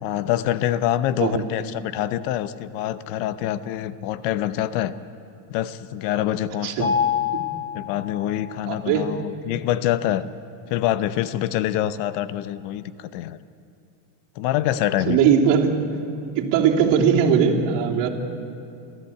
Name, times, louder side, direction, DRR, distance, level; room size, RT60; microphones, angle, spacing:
voice 1, 0.0-4.9 5.5-7.0 7.7-10.2 10.7-13.4 14.4-15.2, left 12 dB, 70° left, 14 dB, 1.0 m, -25 dB
Mallet percussion, 6.8-8.8, left 7 dB, 25° left, 2.3 m, -26 dB
voice 2, 8.7-9.0 15.1-15.7 16.3-18.1, right 7 dB, 60° right, -1 dB, 3.1 m, -19 dB
28.5 x 14.0 x 8.5 m, 2.7 s
supercardioid pair, 135°, 48 cm